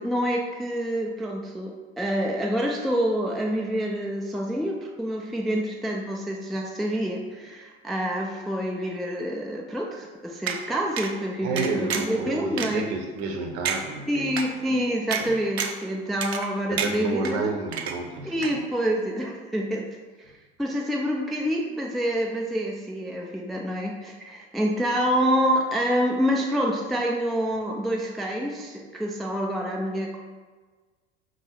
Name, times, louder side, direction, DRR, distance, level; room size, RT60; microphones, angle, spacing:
voice 1, 0.0-12.8 14.1-17.5 18.3-19.9 20.6-30.2, equal, ahead, -1 dB, 0.4 m, -27 dB
sound 1, 10.5-10.6 11.0-11.1 11.6-12.2 12.6-12.7 13.2-13.3 13.6-13.8 14.4-14.5 15.1-15.2 15.6-15.8 16.2-16.5 16.8-17.3 17.7-18.2 18.4-18.5, right 7 dB, 85° right, 0.5 m, -29 dB
voice 2, 11.4-14.4 15.2-15.4 16.7-18.6, right 3 dB, 50° right, 3 dB, 0.8 m, -30 dB
5.3 x 2.0 x 4.8 m, 1.4 s
figure-of-eight pair, 75°, 31 cm